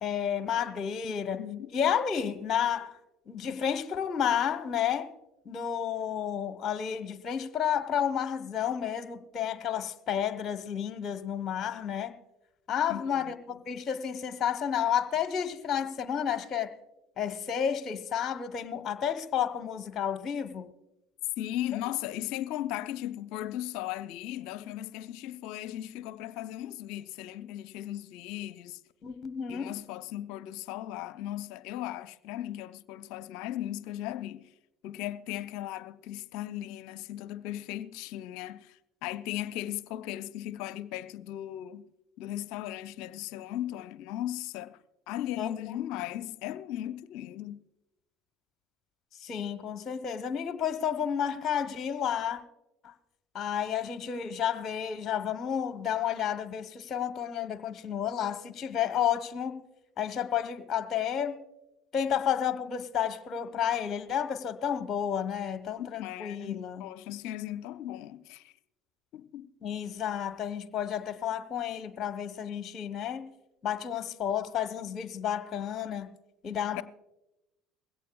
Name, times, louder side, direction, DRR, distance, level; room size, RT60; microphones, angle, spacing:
voice 1, 0.0-1.4 1.7-3.0 3.3-5.1 5.5-12.1 12.7-13.4 13.7-16.7 17.2-20.7 29.0-29.7 45.4-45.5 49.2-52.4 52.8-52.9 53.3-59.6 60.0-61.4 61.9-66.8 67.5-67.6 69.6-73.3 73.6-76.1 76.4-76.8, left 8 dB, 40° left, 1.0 m, -31 dB
voice 2, 1.4-1.7 12.9-13.6 21.4-28.8 29.5-34.5 34.8-41.9 42.2-44.8 45.1-47.6 65.8-68.5 69.1-69.5 76.7-76.8, left 13 dB, 65° left, 0.6 m, -37 dB
21.0 x 16.5 x 2.3 m
hypercardioid pair, 65°, 0 cm